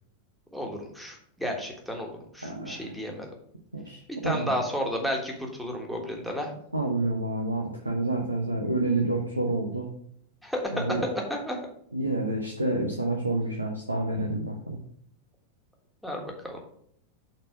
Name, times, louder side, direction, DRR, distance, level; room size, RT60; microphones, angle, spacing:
voice 1, 0.5-3.3 4.1-6.5 10.4-11.6 16.0-16.6, equal, ahead, 0 dB, 1.4 m, -32 dB
voice 2, 2.4-2.9 3.7-4.6 6.7-9.9 10.7-11.0 11.9-14.8, right 2 dB, 85° right, 2 dB, 0.8 m, -29 dB
6.6 x 4.0 x 4.8 m, 0.65 s
figure-of-eight pair, 90°, 0 cm